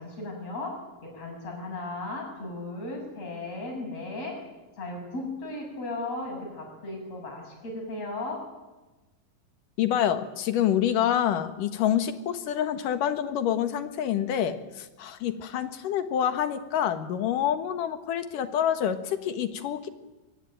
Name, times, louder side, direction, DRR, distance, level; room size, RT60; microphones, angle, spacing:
voice 1, 0.0-4.4 4.8-8.4, left 2 dB, 50° left, 1 dB, 9.0 m, -36 dB
voice 2, 9.8-19.9, left 10 dB, 80° left, 9 dB, 3.0 m, -27 dB
23.5 x 23.0 x 9.1 m, 1.1 s
omnidirectional pair, 3.8 m